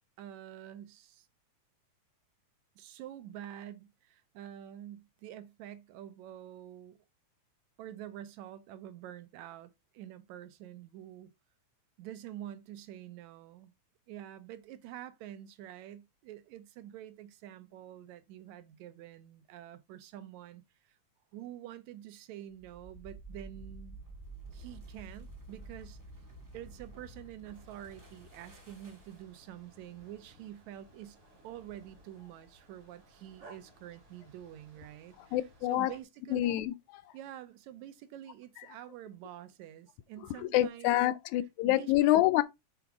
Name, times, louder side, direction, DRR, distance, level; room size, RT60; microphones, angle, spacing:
voice 1, 0.2-1.3 2.8-7.0 7.8-11.3 12.0-13.7 14.1-21.0 21.3-24.0 24.5-26.0 26.5-35.4 35.7-36.6 37.1-41.0 41.7-42.2, right 11 dB, 80° right, 2.0 m, -47 dB
sound 1, 22.5-29.4, right 2 dB, 10° right, 1.5 m, -50 dB
sound 2, 27.5-36.0, right 1 dB, 55° right, 3.1 m, -60 dB
voice 2, 35.2-35.9 36.3-36.7 40.4-42.4, left 15 dB, 85° left, 2.0 m, -27 dB
7.0 x 3.6 x 4.7 m
omnidirectional pair, 3.3 m